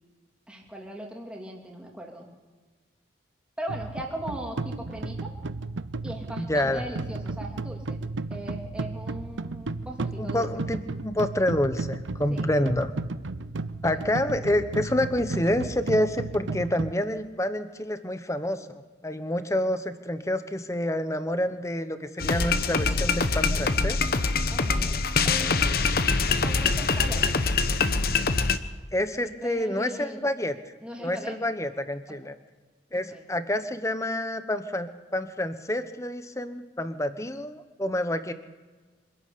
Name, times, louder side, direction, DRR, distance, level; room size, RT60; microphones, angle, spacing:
voice 1, 0.5-2.3 3.6-5.3 6.0-8.0 8.3-10.5 12.3-12.5 13.9-14.0 24.5-25.0 25.2-25.6 26.3-27.3 29.2-30.2 30.8-31.4 32.1-32.2 33.1-33.2, right 1 dB, 5° right, -1 dB, 2.9 m, -39 dB
sound 1, 3.7-16.9, right 3 dB, 90° right, 0.7 m, -34 dB
voice 2, 6.4-6.9 10.2-12.9 13.8-24.0 28.9-30.5 31.0-32.3 32.9-38.3, left 1 dB, 15° left, 10 dB, 1.0 m, -28 dB
sound 2, 22.2-28.6, left 4 dB, 50° left, 1.0 m, -24 dB
25.5 x 12.0 x 8.5 m, 1.4 s
head